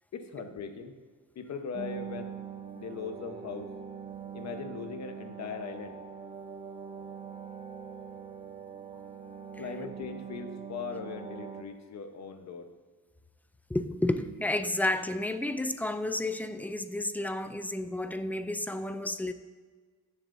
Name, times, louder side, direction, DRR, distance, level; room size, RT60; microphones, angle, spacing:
voice 1, 0.1-1.0 1.3-2.3 2.7-3.7 4.3-6.0 9.6-12.7, left 5 dB, 50° left, 6 dB, 1.1 m, -39 dB
sound 1, 1.7-11.6, right 6 dB, 20° right, 0.9 m, -43 dB
voice 2, 13.7-19.3, left 1 dB, 5° left, 10 dB, 0.4 m, -31 dB
15.0 x 7.1 x 2.7 m, 1.5 s
cardioid pair, 125°, 34 cm